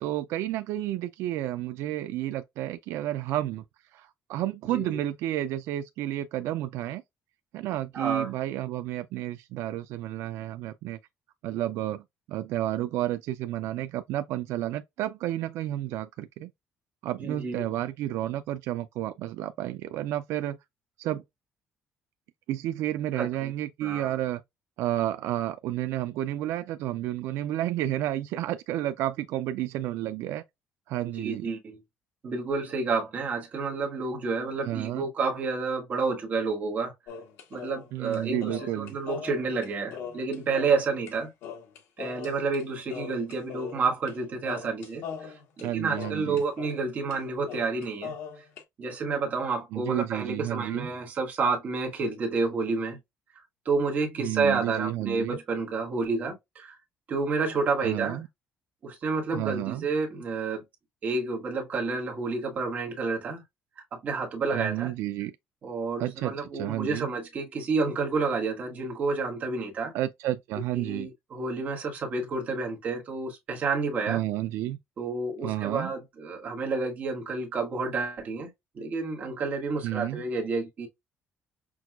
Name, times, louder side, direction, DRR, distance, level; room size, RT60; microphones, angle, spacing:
voice 1, 0.0-3.6 3.9-7.0 7.5-11.0 11.4-16.5 17.0-20.6 21.0-21.2 22.5-24.4 24.8-30.4 30.9-31.5 34.6-35.0 37.9-39.0 45.6-46.4 49.7-50.9 54.2-55.4 57.8-58.3 59.3-59.9 64.5-65.4 66.0-67.1 69.9-71.1 74.1-74.8 75.4-75.9 79.8-80.2, right 14 dB, 75° right, 0.3 m, -31 dB
voice 2, 7.9-8.3 17.2-17.6 23.1-23.5 23.8-24.1 31.1-31.8 32.2-36.9 37.5-41.3 42.0-48.4 48.8-53.0 53.6-56.8 57.1-58.2 58.8-60.6 61.0-63.4 63.9-64.9 65.6-69.9 70.7-74.2 75.0-80.9, right 4 dB, 35° right, 1.2 m, -30 dB
sound 1, 37.1-41.1 41.4-42.6 42.9-44.2 44.4-46.8 47.1-47.2 47.5-48.6, left 7 dB, 70° left, 1.1 m, -40 dB
6.0 x 2.3 x 2.2 m
cardioid pair, 175°, 5 cm